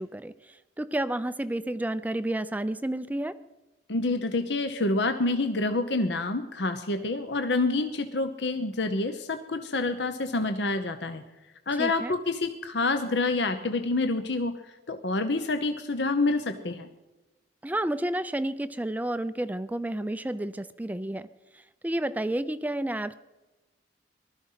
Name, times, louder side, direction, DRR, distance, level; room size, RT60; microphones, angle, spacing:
voice 1, 0.0-3.4 11.8-12.1 17.6-21.3 21.5-23.1, right 1 dB, 10° right, 13 dB, 0.4 m, -31 dB
voice 2, 3.9-11.2 11.7-14.5 14.9-16.9, left 2 dB, 65° left, 7 dB, 0.9 m, -27 dB
19.5 x 13.0 x 5.7 m, 1.1 s
head